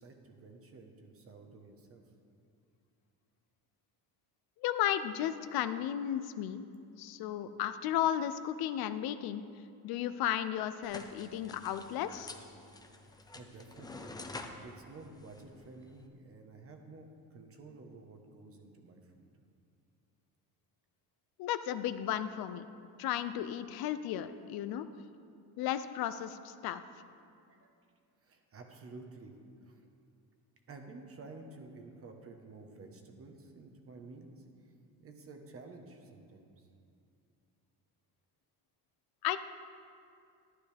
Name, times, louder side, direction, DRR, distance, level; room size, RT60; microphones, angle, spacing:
voice 1, 0.0-2.0 13.0-19.3 27.5-27.7 28.2-29.4 29.6-29.9 30.7-34.4 35.0-36.7, right 3 dB, 35° right, 3 dB, 1.2 m, -52 dB
voice 2, 4.6-6.6 7.0-9.4 9.8-12.3 21.4-22.6 23.0-24.9 25.6-26.8 39.2-39.4, left 11 dB, 70° left, 12 dB, 0.6 m, -34 dB
sound 1, 10.8-16.1, left 2 dB, 10° left, 0.6 m, -49 dB
11.5 x 11.5 x 3.4 m, 2.4 s
cardioid pair, 135°, 38 cm